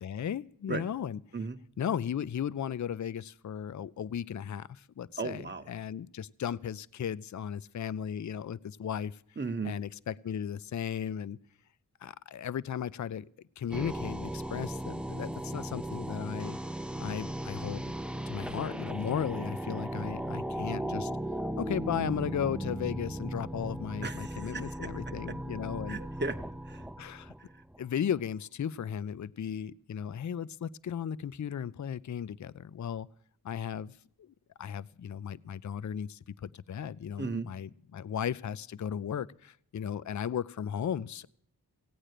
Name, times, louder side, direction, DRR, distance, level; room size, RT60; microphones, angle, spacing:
voice 1, 0.0-1.2 1.8-9.2 9.6-11.4 12.0-13.3 13.6-16.6 17.0-21.1 21.6-26.0 27.0-27.3 27.8-33.1 33.4-41.3, left 8 dB, 50° left, 19 dB, 0.5 m, -36 dB
voice 2, 5.2-5.7 9.4-9.7 24.0-25.4 25.9-26.8 37.2-37.5, right 3 dB, 25° right, 7 dB, 0.9 m, -36 dB
sound 1, 13.7-27.8, right 1 dB, 5° right, 0.5 m, -37 dB
16.5 x 8.9 x 6.6 m, 0.66 s
wide cardioid pair, 50°, 39 cm